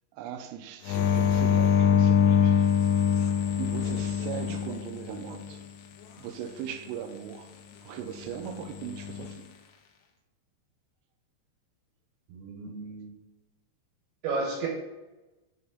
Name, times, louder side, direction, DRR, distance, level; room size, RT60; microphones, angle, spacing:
voice 1, 0.2-2.6 3.6-5.6 6.2-7.5 7.8-9.5, right 9 dB, 90° right, 3.2 m, -39 dB
sound 1, 0.9-5.5 8.8-9.3, left 8 dB, 80° left, 3.2 m, -24 dB
voice 2, 12.3-13.1 14.2-14.7, right 3 dB, 70° right, 2.6 m, -33 dB
8.7 x 4.2 x 3.7 m
omnidirectional pair, 5.8 m